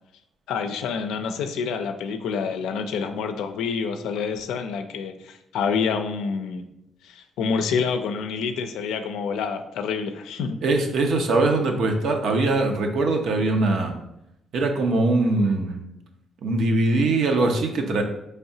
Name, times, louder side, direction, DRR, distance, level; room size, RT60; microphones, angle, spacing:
voice 1, 0.5-6.7 7.0-10.6, left 5 dB, 85° left, 7 dB, 0.4 m, -27 dB
voice 2, 10.6-13.9 14.5-15.8 16.4-18.0, right 2 dB, 70° right, 4 dB, 0.6 m, -22 dB
4.7 x 3.4 x 2.7 m, 0.84 s
cardioid pair, 90°, 0 cm